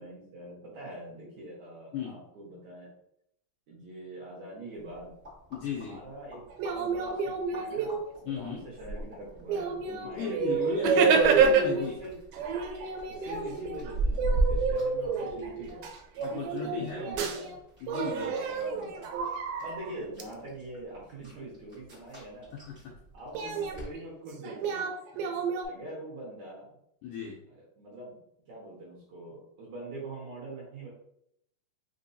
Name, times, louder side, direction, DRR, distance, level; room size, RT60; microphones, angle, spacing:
voice 1, 0.0-2.9 3.7-5.1 5.7-10.9 11.7-12.1 13.1-15.9 16.4-17.6 18.1-19.2 19.6-22.6 23.1-24.9 25.6-26.8 27.5-28.2 28.5-30.9, right 1 dB, 60° right, -6 dB, 2.1 m, -44 dB
sound 1, 4.8-23.9, right 2 dB, 45° right, 0.9 m, -38 dB
voice 2, 5.5-6.0 8.3-8.7 10.2-11.9 16.2-17.0 17.8-18.3 22.5-22.9 25.2-25.3 27.0-27.4, left 4 dB, 80° left, -2 dB, 1.8 m, -35 dB
sound 2, 6.5-8.3 9.0-9.1 9.5-11.9 12.3-17.6 17.9-20.2 23.3-25.7, right 5 dB, 85° right, 2.5 m, -29 dB
5.4 x 2.8 x 2.7 m, 0.74 s
omnidirectional pair, 4.2 m